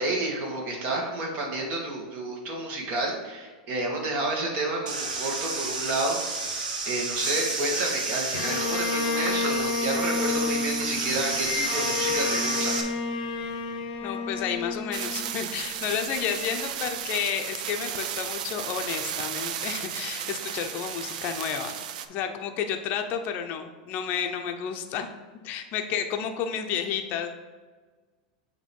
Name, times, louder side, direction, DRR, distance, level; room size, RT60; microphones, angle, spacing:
voice 1, 0.0-6.2 6.9-12.8, right 2 dB, 40° right, -1 dB, 1.9 m, -30 dB
sound 1, 4.9-12.8, right 3 dB, 90° right, 1.2 m, -31 dB
Bowed string instrument, 8.3-15.6, left 4 dB, 75° left, 0.8 m, -30 dB
voice 2, 14.0-21.8 22.1-25.1 25.4-27.3, left 8 dB, 45° left, 5 dB, 0.7 m, -31 dB
sound 2, 14.9-22.1, right 9 dB, 70° right, 0.5 m, -34 dB
7.6 x 3.0 x 5.3 m, 1.4 s
supercardioid pair, 130°, 4 cm